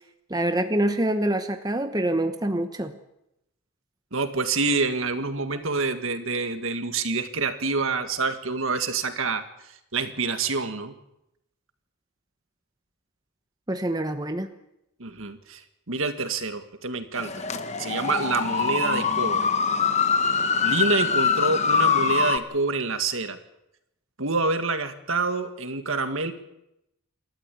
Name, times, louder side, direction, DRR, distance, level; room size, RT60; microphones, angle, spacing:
voice 1, 0.3-2.9 13.7-14.5, right 1 dB, 15° right, 7 dB, 1.0 m, -25 dB
voice 2, 4.1-9.4 9.9-10.9 15.0-15.6 15.9-17.5 17.8-19.5 20.6-23.4 24.2-26.3, right 3 dB, 65° right, 8 dB, 1.9 m, -27 dB
sound 1, 17.1-22.4, left 5 dB, 30° left, 1.1 m, -23 dB
28.0 x 13.0 x 8.5 m, 0.85 s
head